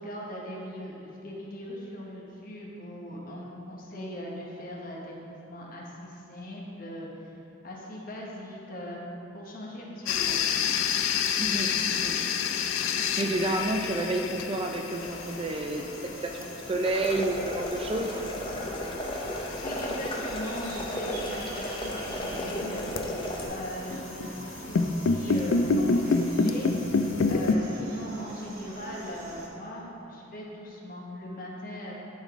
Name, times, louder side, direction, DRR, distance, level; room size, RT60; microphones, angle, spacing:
voice 1, 0.0-7.3 7.6-9.0 9.3-10.4 19.5-22.9 23.5-31.9, equal, 45° left, -3 dB, 1.1 m, -39 dB
sound 1, 10.1-27.6, left 4 dB, 80° left, 0.4 m, -30 dB
voice 2, 11.4-12.2 13.2-18.2, right 2 dB, 25° right, 2 dB, 0.3 m, -30 dB
sound 2, 14.9-29.5, right 2 dB, 45° right, 0.9 m, -45 dB
sound 3, 16.8-23.5, left 1 dB, 25° left, 0.7 m, -34 dB
11.5 x 3.9 x 3.6 m, 2.8 s
head